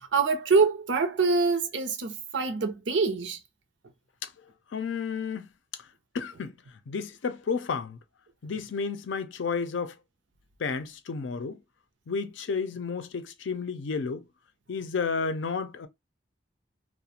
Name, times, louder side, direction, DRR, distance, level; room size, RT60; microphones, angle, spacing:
voice 1, 0.0-3.4, right 4 dB, 85° right, 0.6 m, -25 dB
voice 2, 4.7-5.5 6.1-6.6 6.9-8.0 8.4-10.0 10.6-11.6 12.1-14.3 14.7-15.9, left 5 dB, 90° left, 0.5 m, -31 dB
2.4 x 2.1 x 2.7 m
head